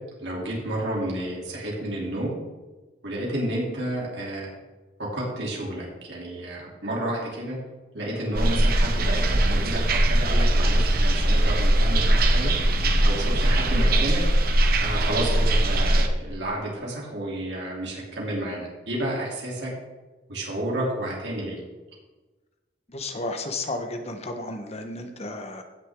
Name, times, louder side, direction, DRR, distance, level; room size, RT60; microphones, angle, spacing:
voice 1, 0.2-2.3 3.0-4.5 5.0-7.6 7.9-12.5 13.0-14.2 14.8-19.7 20.3-21.6, right 1 dB, 75° right, -3 dB, 3.1 m, -31 dB
sound 1, 8.3-16.1, right 1 dB, 55° right, 1.0 m, -21 dB
voice 2, 22.9-25.6, left 2 dB, 35° left, 6 dB, 1.0 m, -33 dB
15.5 x 6.4 x 3.7 m, 1.2 s
head